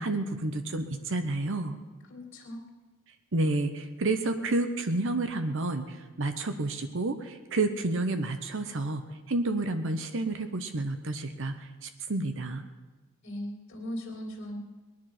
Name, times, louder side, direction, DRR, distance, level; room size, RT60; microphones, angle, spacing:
voice 1, 0.0-1.8 3.3-12.6, right 2 dB, 60° right, 8 dB, 0.9 m, -30 dB
voice 2, 2.1-2.6 13.2-14.6, equal, 50° left, -5 dB, 2.6 m, -38 dB
20.0 x 10.5 x 6.0 m, 1.2 s
head